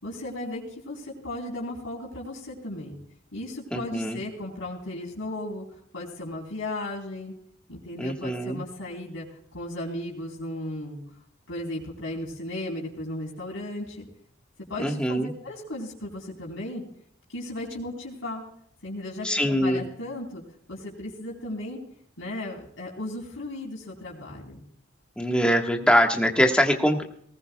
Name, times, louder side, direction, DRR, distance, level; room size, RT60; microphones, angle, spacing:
voice 1, 0.0-3.0 3.3-5.6 5.9-7.3 7.7-9.3 9.5-11.0 11.5-14.1 14.7-16.8 17.3-18.4 18.8-20.4 20.7-21.8 22.2-24.6, left 1 dB, 90° left, -4 dB, 4.1 m, -35 dB
voice 2, 3.7-4.2 8.0-8.6 14.8-15.3 19.2-19.8 25.2-27.0, equal, 5° left, 2 dB, 1.5 m, -23 dB
19.5 x 19.0 x 2.3 m, 0.66 s
head